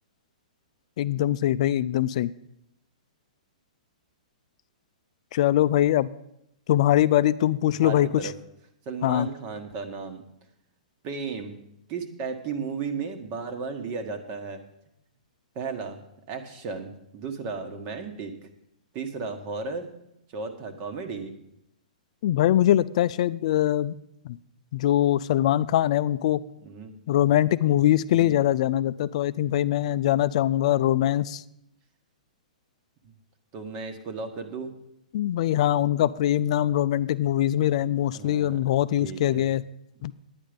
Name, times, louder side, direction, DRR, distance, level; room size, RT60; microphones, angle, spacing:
voice 1, 1.0-2.3 5.3-6.1 6.7-8.1 9.0-9.3 22.2-23.9 24.3-24.4 24.7-26.4 27.1-31.4 35.1-39.6 40.0-40.1, left 12 dB, 55° left, 15 dB, 0.4 m, -22 dB
voice 2, 7.8-8.3 8.8-10.2 11.0-11.6 11.9-14.6 15.5-16.0 16.3-18.3 18.9-19.9 20.3-21.3 26.6-26.9 28.1-28.4 33.0-33.1 33.5-34.7 38.1-38.6 39.0-39.4, right 5 dB, 40° right, 7 dB, 1.4 m, -34 dB
10.0 x 9.5 x 5.1 m, 0.79 s
hypercardioid pair, 130°, 4 cm